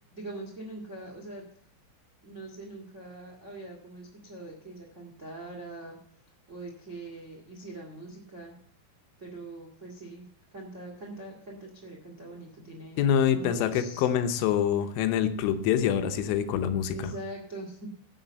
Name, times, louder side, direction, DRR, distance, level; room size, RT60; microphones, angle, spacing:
voice 1, 0.1-1.4 2.2-6.0 6.5-8.5 9.2-10.3 10.5-14.1 16.9-17.9, right 2 dB, 75° right, 0 dB, 0.6 m, -42 dB
voice 2, 13.0-17.0, left 9 dB, 85° left, 9 dB, 3.4 m, -25 dB
11.5 x 6.5 x 8.0 m, 0.63 s
omnidirectional pair, 5.5 m